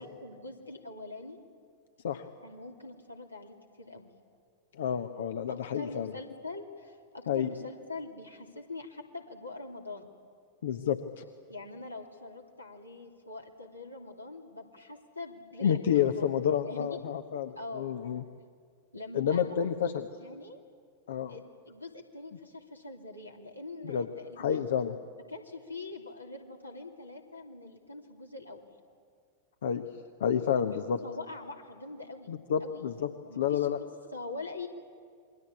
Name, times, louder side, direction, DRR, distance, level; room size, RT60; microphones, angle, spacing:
voice 1, 0.0-1.4 2.4-4.1 5.5-10.1 11.5-16.3 16.6-17.0 17.6-17.9 18.9-19.9 20.2-20.6 21.3-24.6 25.3-28.6 31.0-32.3 32.6-33.7 34.1-34.7, left 3 dB, 85° left, 1 dB, 2.9 m, -43 dB
voice 2, 4.7-6.1 7.3-7.5 10.6-11.2 15.6-18.2 19.1-20.1 21.1-21.3 23.8-24.1 24.4-24.9 29.6-29.8 30.2-31.0 32.3-33.1 33.4-33.8, left 8 dB, 60° left, 8 dB, 1.1 m, -29 dB
27.5 x 22.5 x 8.7 m, 2.1 s
figure-of-eight pair, 90°, 0 cm